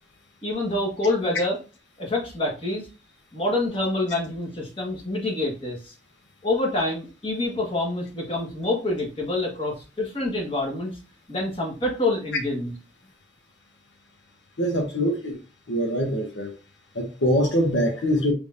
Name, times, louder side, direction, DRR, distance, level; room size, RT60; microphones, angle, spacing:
voice 1, 0.4-1.6 2.0-2.9 3.3-5.9 6.4-11.0 11.3-12.7, left 2 dB, 30° left, -1 dB, 1.5 m, -26 dB
voice 2, 14.6-15.4 15.7-16.5 16.9-18.3, equal, 80° left, 1 dB, 1.1 m, -23 dB
4.9 x 3.5 x 2.6 m, 0.33 s
head